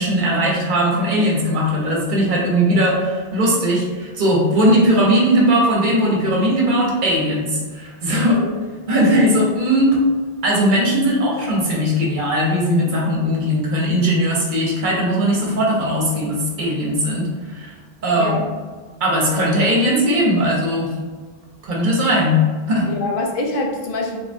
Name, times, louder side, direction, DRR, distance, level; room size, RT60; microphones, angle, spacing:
voice 1, 0.0-8.3 8.9-10.0 10.4-17.7 18.0-18.3 19.0-20.9 21.6-22.4 22.7-22.9, equal, 55° right, -3 dB, 0.9 m, -18 dB
voice 2, 8.1-8.6 18.2-18.5 22.8-24.2, left 2 dB, 65° left, 1 dB, 0.7 m, -24 dB
3.6 x 2.1 x 2.6 m, 1.4 s
omnidirectional pair, 1.1 m